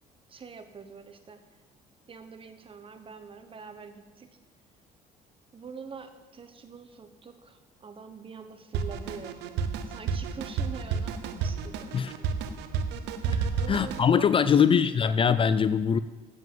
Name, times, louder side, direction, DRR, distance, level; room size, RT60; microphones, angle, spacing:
voice 1, 0.3-1.4 2.1-4.3 5.5-12.3 13.2-14.8, right 5 dB, 30° right, 8 dB, 1.1 m, -44 dB
Drum kit, 8.7-14.1, right 6 dB, 85° right, 0.8 m, -31 dB
voice 2, 13.7-16.0, left 7 dB, 30° left, 14 dB, 0.3 m, -22 dB
7.8 x 7.6 x 7.7 m, 1.3 s
cardioid pair, 110°, 17 cm